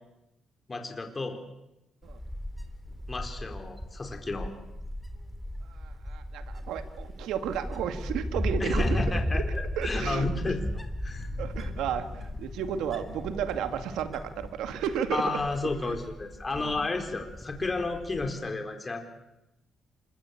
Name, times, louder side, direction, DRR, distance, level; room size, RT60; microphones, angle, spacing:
voice 1, 0.7-1.4 3.1-4.5 8.6-9.4 9.8-10.6 11.0-11.3 15.1-19.0, left 3 dB, 25° left, 5 dB, 4.1 m, -32 dB
Wind, 2.0-18.3, left 1 dB, 5° left, 3.5 m, -35 dB
voice 2, 5.7-9.0 9.3-9.4 9.8-10.5 11.4-15.4 15.8-16.0 16.5-16.9, right 8 dB, 85° right, 9 dB, 2.3 m, -33 dB
sound 1, 11.0-15.9, left 5 dB, 50° left, 7.8 m, -46 dB
26.0 x 22.5 x 8.7 m, 0.94 s
cardioid pair, 90°, 0 cm